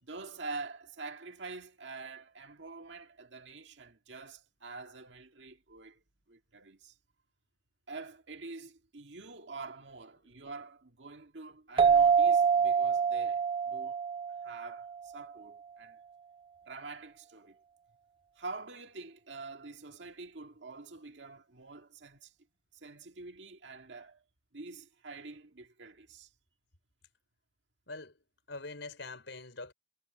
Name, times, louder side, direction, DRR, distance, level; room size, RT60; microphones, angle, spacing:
voice 1, 0.0-6.0 6.3-6.9 7.9-14.0 14.4-16.0 16.6-17.6 18.4-22.3 22.7-24.2 24.5-26.3, right 3 dB, 70° right, 1.9 m, -46 dB
sound 1, 11.8-15.1, right 6 dB, 25° right, 0.4 m, -26 dB
voice 2, 27.9-28.2 28.5-29.7, left 3 dB, 75° left, 4.9 m, -43 dB
head